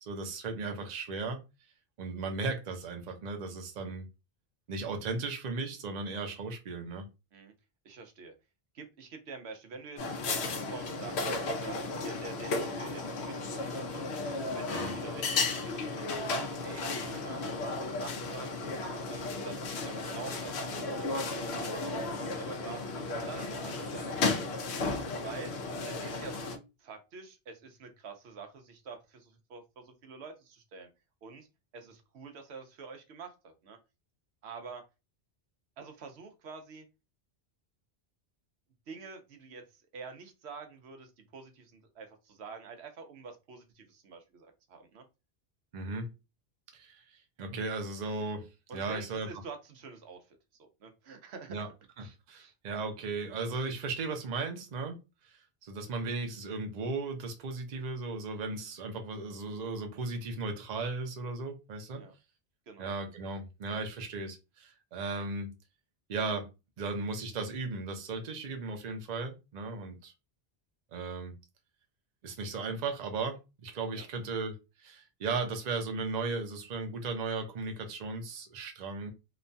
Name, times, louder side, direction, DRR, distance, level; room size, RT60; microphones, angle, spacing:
voice 1, 0.0-1.4 2.0-4.1 4.7-7.1 14.7-15.0 45.7-46.1 46.7-49.3 51.5-51.7 52.0-55.0 55.2-62.0 62.8-65.5 66.1-66.5 66.8-70.1 70.9-71.3 72.2-79.1, right 3 dB, 50° right, 0.6 m, -36 dB
voice 2, 7.8-8.3 8.7-11.8 12.0-14.0 14.5-18.6 19.1-22.8 23.1-24.9 25.2-25.5 25.8-30.9 31.2-31.5 31.7-33.8 34.4-34.8 35.8-36.9 38.9-45.0 48.7-51.6 52.0-52.5 61.9-62.1 62.7-62.9 73.9-74.1, right 4 dB, 85° right, 0.9 m, -47 dB
sound 1, 10.0-26.6, left 3 dB, 80° left, 0.9 m, -34 dB
3.0 x 2.2 x 2.5 m
omnidirectional pair, 1.1 m